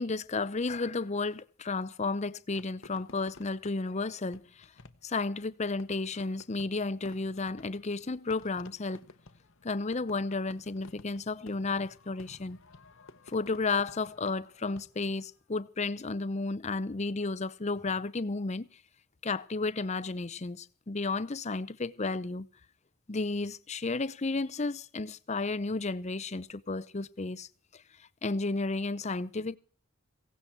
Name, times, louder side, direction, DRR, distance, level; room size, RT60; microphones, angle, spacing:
voice 1, 0.0-4.7 5.0-9.0 9.6-12.6 13.3-18.7 19.2-22.5 23.1-29.6, left 3 dB, 30° left, 0.7 m, -33 dB
Fireworks, 2.5-15.3, left 3 dB, 65° left, 1.0 m, -54 dB
17.0 x 16.5 x 4.5 m
head